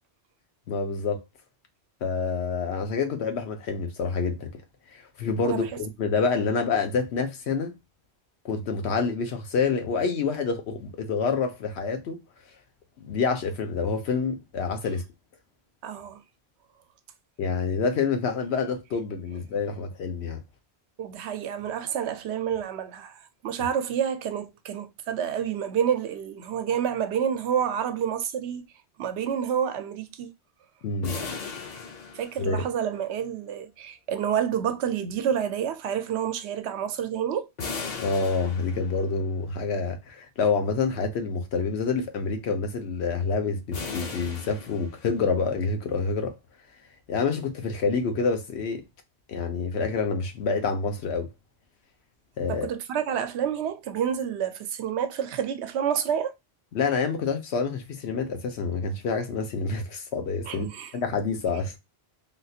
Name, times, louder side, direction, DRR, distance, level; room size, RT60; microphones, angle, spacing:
voice 1, 0.7-1.2 2.0-4.5 4.9-7.7 8.4-12.2 13.0-15.0 17.4-20.4 30.8-31.1 32.4-32.6 38.0-46.3 47.1-48.8 49.3-51.3 52.4-52.7 56.7-61.8, left 4 dB, 80° left, 1.0 m, -27 dB
voice 2, 5.4-5.8 15.8-16.2 21.0-28.7 29.0-30.3 32.1-37.5 52.5-56.3 60.5-60.9, right 8 dB, 85° right, 0.9 m, -29 dB
sound 1, 31.0-32.9 37.6-39.2 43.7-45.4, left 4 dB, 45° left, 0.7 m, -37 dB
3.6 x 2.4 x 2.7 m
omnidirectional pair, 1.1 m